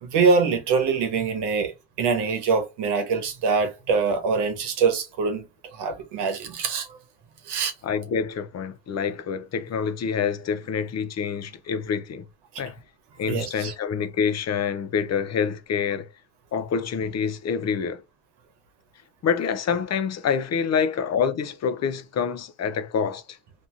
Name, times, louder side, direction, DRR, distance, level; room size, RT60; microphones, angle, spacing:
voice 1, 0.0-1.7 2.0-5.4 5.7-7.0 7.4-7.7 13.3-13.7, right 5 dB, 90° right, 1.0 m, -24 dB
voice 2, 7.8-12.2 12.6-12.8 13.2-16.1 16.5-18.0 19.2-23.4, left 6 dB, 45° left, 0.4 m, -26 dB
2.8 x 2.6 x 2.3 m
cardioid pair, 120°, 39 cm